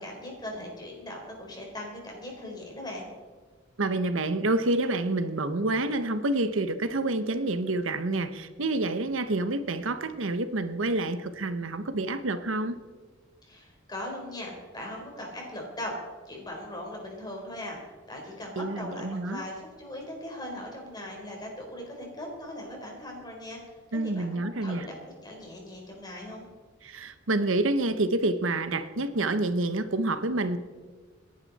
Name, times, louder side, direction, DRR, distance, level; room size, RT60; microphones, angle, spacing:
voice 1, 0.0-3.1 13.4-16.0 16.3-17.8 18.1-23.6 23.9-24.9 25.2-26.5, left 1 dB, 20° left, 0 dB, 4.1 m, -39 dB
voice 2, 3.8-12.8 18.6-19.4 23.9-24.9 26.8-30.6, right 2 dB, 90° right, 11 dB, 1.0 m, -28 dB
27.0 x 10.5 x 4.2 m, 1.5 s
head